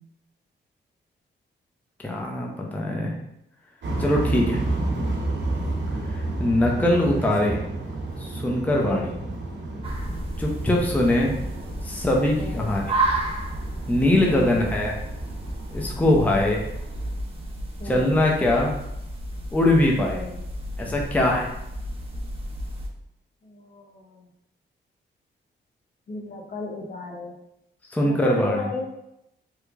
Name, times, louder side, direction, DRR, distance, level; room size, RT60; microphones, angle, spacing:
voice 1, 2.0-3.1 4.0-4.6 6.4-7.6 8.2-9.1 10.4-11.3 11.8-12.9 13.9-15.0 15.7-16.6 17.8-18.7 19.5-20.2 20.8-21.5 27.9-28.7, left 1 dB, 10° left, -1 dB, 0.5 m, -22 dB
sound 1, 3.8-17.1, right 2 dB, 70° right, 0.9 m, -31 dB
voice 2, 8.8-9.1 10.6-10.7 11.0-11.5 12.4-12.7 14.3-14.7 16.0-16.4 17.8-18.2 20.0-20.4 23.4-24.3 26.1-27.3 28.0-28.9, left 3 dB, 55° left, 1 dB, 0.7 m, -35 dB
sound 2, 9.8-22.9, right 1 dB, 30° right, 0.7 m, -32 dB
3.1 x 2.4 x 3.3 m, 0.82 s
cardioid pair, 110°, 19 cm